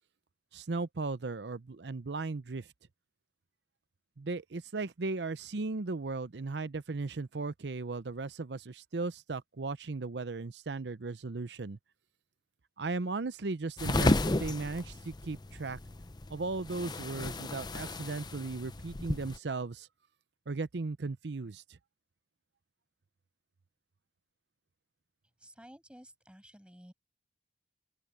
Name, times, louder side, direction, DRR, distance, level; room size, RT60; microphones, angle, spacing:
voice 1, 0.5-2.7 4.2-11.8 12.8-15.8 16.3-19.9 20.5-21.8, right 3 dB, 75° right, 0.7 m, -36 dB
sound 1, 13.8-19.4, left 2 dB, 25° left, 0.7 m, -33 dB
voice 2, 25.4-26.9, equal, 5° right, 7.5 m, -53 dB
open air
head